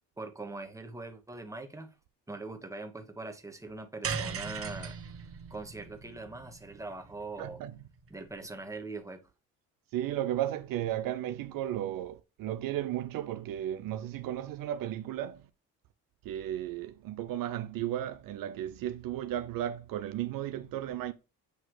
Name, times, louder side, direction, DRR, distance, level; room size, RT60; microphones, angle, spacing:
voice 1, 0.2-1.9 2.3-5.0 5.5-7.6 8.1-9.2, right 3 dB, 10° right, 1.3 m, -42 dB
sound 1, 4.0-8.4, right 6 dB, 40° right, 1.2 m, -40 dB
voice 2, 7.4-7.7 9.9-15.5 16.2-21.1, right 12 dB, 65° right, 0.6 m, -34 dB
8.1 x 2.9 x 4.8 m
supercardioid pair, 75°, 36 cm